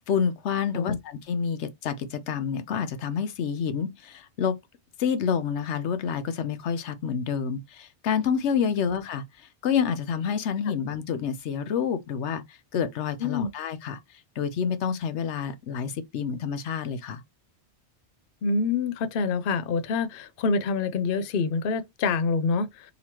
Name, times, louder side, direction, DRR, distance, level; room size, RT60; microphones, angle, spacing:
voice 1, 0.0-4.5 5.0-14.0 14.4-17.2, left 7 dB, 80° left, 0.9 m, -28 dB
voice 2, 18.4-22.9, left 4 dB, 60° left, 0.7 m, -26 dB
4.0 x 2.9 x 2.9 m
omnidirectional pair, 1.2 m